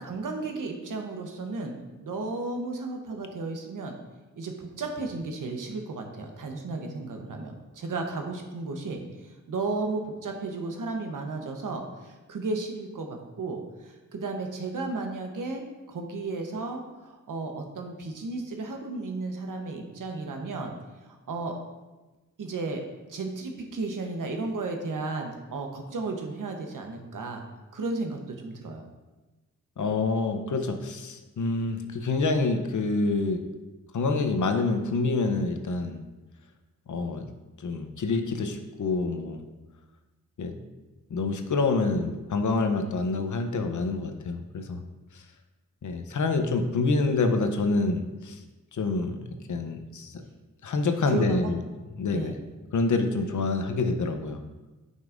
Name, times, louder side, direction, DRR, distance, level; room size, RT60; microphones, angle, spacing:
voice 1, 0.0-3.9 4.4-20.7 21.1-21.6 22.4-22.8 23.1-27.4 27.7-28.9 51.1-51.5 52.1-52.4, right 3 dB, 80° right, 3 dB, 1.0 m, -34 dB
voice 2, 29.8-33.4 33.9-36.0 36.9-37.3 37.6-39.4 40.4-40.5 41.1-44.8 45.1-45.2 45.8-48.4 48.7-50.2 50.6-51.6 52.0-52.3 52.7-54.4, left 3 dB, 65° left, 6 dB, 0.8 m, -27 dB
9.3 x 5.5 x 2.6 m, 1.1 s
wide cardioid pair, 85°, 32 cm